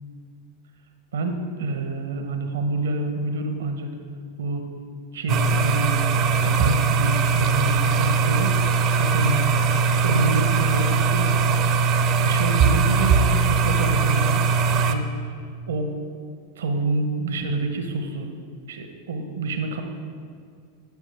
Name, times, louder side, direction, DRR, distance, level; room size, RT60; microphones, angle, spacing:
voice 1, 1.1-3.9 4.4-4.7 5.1-8.6 9.0-9.5 10.0-15.1 15.7-16.0 16.6-18.3 18.7-19.8, right 3 dB, 75° right, 6 dB, 1.0 m, -27 dB
sound 1, 5.3-14.9, right 5 dB, 45° right, 0.6 m, -20 dB
13.0 x 6.4 x 3.4 m, 2.1 s
hypercardioid pair, 90°, 0 cm